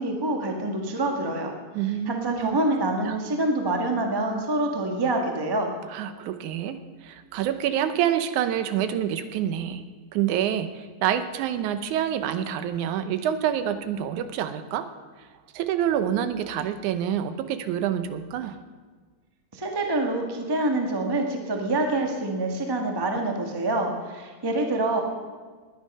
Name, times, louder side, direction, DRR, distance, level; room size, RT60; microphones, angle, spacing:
voice 1, 0.0-1.5 2.1-5.7 19.5-25.0, right 2 dB, 25° right, 2 dB, 0.4 m, -26 dB
voice 2, 1.7-2.6 3.1-3.2 5.9-9.8 10.1-14.9 15.5-18.6, right 10 dB, 80° right, 10 dB, 2.1 m, -27 dB
20.0 x 10.0 x 5.4 m, 1.5 s
omnidirectional pair, 3.5 m